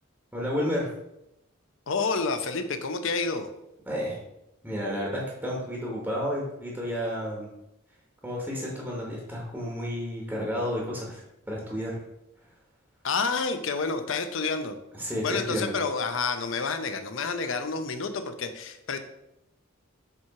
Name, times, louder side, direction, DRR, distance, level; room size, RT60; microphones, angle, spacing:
voice 1, 0.3-0.9 3.9-4.2 4.6-7.5 8.2-11.2 11.5-12.0 15.0-15.7, equal, 5° right, -3 dB, 1.1 m, -31 dB
voice 2, 1.9-3.5 13.0-14.8 15.2-19.0, left 4 dB, 65° left, 8 dB, 0.7 m, -29 dB
7.0 x 3.1 x 4.8 m, 0.85 s
head